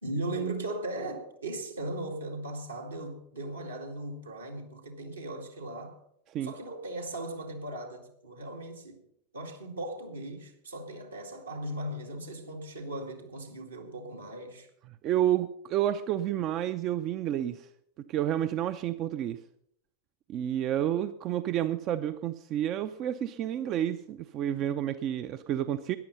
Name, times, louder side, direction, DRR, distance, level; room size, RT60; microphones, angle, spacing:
voice 1, 0.0-6.0 6.4-9.0 9.3-14.7, right 1 dB, 75° right, 2.2 m, -38 dB
voice 2, 15.0-17.7 18.1-19.4 20.3-26.0, right 11 dB, 35° right, 0.5 m, -30 dB
13.5 x 10.5 x 5.5 m
figure-of-eight pair, 90°, 0 cm